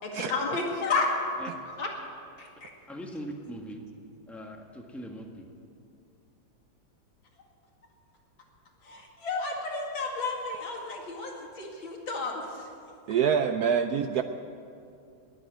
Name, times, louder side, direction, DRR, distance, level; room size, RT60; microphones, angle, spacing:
voice 1, 0.0-1.9 2.4-2.7 8.8-12.7, left 3 dB, 90° left, -1 dB, 3.0 m, -32 dB
voice 2, 2.9-3.8 4.3-5.5, equal, ahead, 1 dB, 1.3 m, -40 dB
voice 3, 13.1-14.2, right 7 dB, 70° right, 8 dB, 0.9 m, -25 dB
20.0 x 7.7 x 9.2 m, 2.5 s
omnidirectional pair, 2.1 m